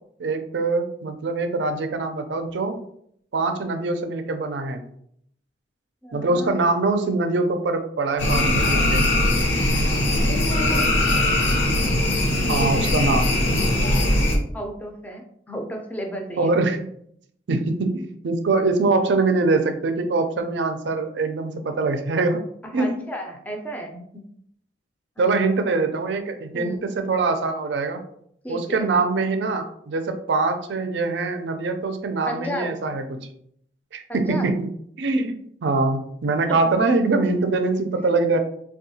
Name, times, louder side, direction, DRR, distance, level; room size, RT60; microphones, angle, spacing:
voice 1, 0.2-2.8 3.3-4.9 6.1-9.1 12.5-13.3 16.4-16.9 17.5-22.4 22.7-23.0 25.2-28.0 28.5-33.3 33.9-34.7 35.0-35.4 35.6-38.4, right 3 dB, 70° right, 7 dB, 0.4 m, -23 dB
voice 2, 6.0-6.6 10.1-11.2 12.4-13.1 13.3-13.7 14.5-16.7 17.5-17.6 22.7-24.0 25.2-25.5 26.5-26.9 28.4-28.8 32.3-32.8 34.1-34.5, right 1 dB, 10° left, 2 dB, 0.4 m, -34 dB
sound 1, 8.2-14.4, left 1 dB, 70° left, 0.7 m, -20 dB
3.6 x 2.3 x 2.7 m, 0.68 s
head